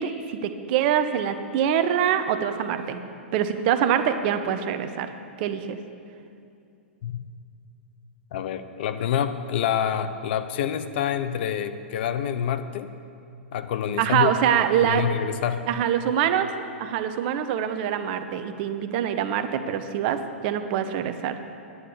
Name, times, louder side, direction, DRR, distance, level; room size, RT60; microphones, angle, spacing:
voice 1, 0.0-3.0 3.3-5.1 5.4-5.8 14.0-15.2 15.7-16.5 16.8-21.4, right 9 dB, 50° right, 9 dB, 0.8 m, -24 dB
voice 2, 8.3-12.9 13.5-14.3 14.8-15.6, left 9 dB, 55° left, 11 dB, 0.7 m, -27 dB
10.5 x 9.7 x 7.0 m, 2.5 s
hypercardioid pair, 110°, 7 cm